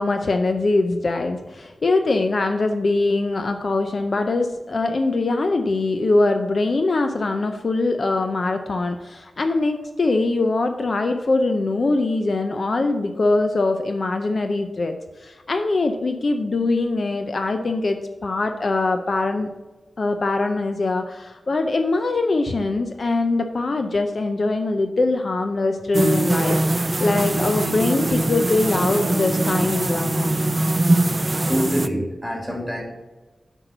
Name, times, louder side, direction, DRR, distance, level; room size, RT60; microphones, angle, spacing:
voice 1, 0.0-19.5 20.0-30.3, left 3 dB, 50° left, 6 dB, 0.5 m, -22 dB
sound 1, 25.9-31.9, right 2 dB, 25° right, 0.3 m, -22 dB
voice 2, 31.3-32.8, equal, 5° right, 0 dB, 2.3 m, -26 dB
7.9 x 4.6 x 6.5 m, 1.2 s
wide cardioid pair, 125°, 0 cm